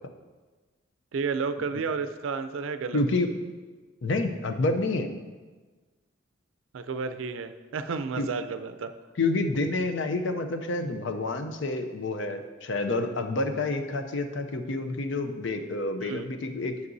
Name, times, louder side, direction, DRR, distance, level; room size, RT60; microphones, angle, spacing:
voice 1, 1.1-3.0 6.7-8.9 16.0-16.3, right 5 dB, 85° right, 10 dB, 0.4 m, -31 dB
voice 2, 2.9-3.3 4.0-5.1 8.2-8.3 9.2-16.7, left 2 dB, 70° left, 6 dB, 0.6 m, -28 dB
9.5 x 6.6 x 2.7 m, 1.3 s
head